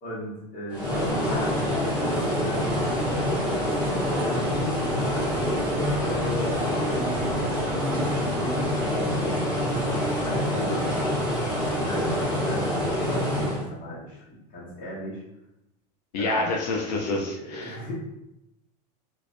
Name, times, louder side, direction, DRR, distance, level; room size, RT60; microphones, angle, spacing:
voice 1, 0.0-2.7 3.5-9.6 10.2-11.0 11.7-15.2 16.2-16.5 17.0-17.9, left 1 dB, 40° left, -5 dB, 1.1 m, -36 dB
sound 1, 0.7-13.6, equal, 5° right, 0.9 m, -26 dB
voice 2, 16.1-17.8, left 2 dB, 90° left, -1 dB, 0.5 m, -27 dB
2.4 x 2.3 x 2.5 m, 0.88 s
supercardioid pair, 115°, 21 cm